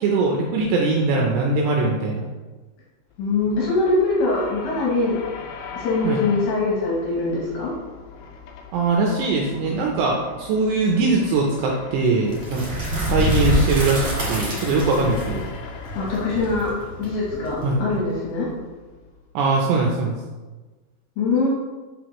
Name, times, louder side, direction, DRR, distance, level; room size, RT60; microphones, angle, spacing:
voice 1, 0.0-2.3 6.0-6.2 8.7-12.6 12.9-15.5 17.6-17.8 19.3-20.1, right 3 dB, 80° right, -1 dB, 2.5 m, -21 dB
sound 1, 3.1-19.5, left 5 dB, 90° left, 2.4 m, -40 dB
voice 2, 3.2-5.2 5.8-7.7 16.0-18.5 21.2-21.5, left 3 dB, 70° left, -4 dB, 2.5 m, -23 dB
sound 2, 12.3-18.1, right 1 dB, 45° right, 1.8 m, -26 dB
6.6 x 5.9 x 3.0 m, 1.3 s
omnidirectional pair, 5.5 m